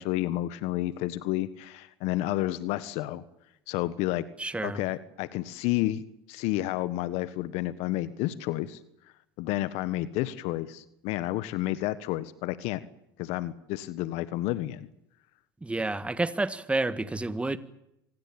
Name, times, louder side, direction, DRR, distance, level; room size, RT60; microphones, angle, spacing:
voice 1, 0.0-3.2 3.7-4.2 4.6-8.8 9.4-12.8 13.2-14.9, left 16 dB, 60° left, 15 dB, 1.4 m, -30 dB
voice 2, 4.4-4.8 15.6-17.6, right 2 dB, 10° right, 14 dB, 1.7 m, -29 dB
25.5 x 19.0 x 8.9 m, 0.83 s
hypercardioid pair, 95°, 12 cm